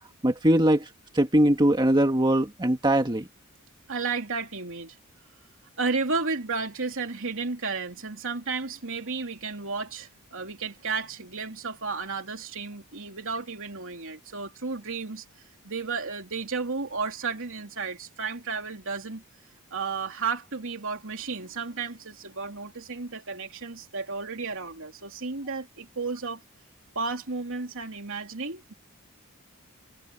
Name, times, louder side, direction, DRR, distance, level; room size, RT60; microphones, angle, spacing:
voice 1, 0.2-3.3, right 1 dB, 20° right, 1.8 m, -22 dB
voice 2, 3.9-5.0 5.8-15.2 15.6-19.2 19.7-26.4 26.9-28.7, right 4 dB, 60° right, 3.2 m, -33 dB
head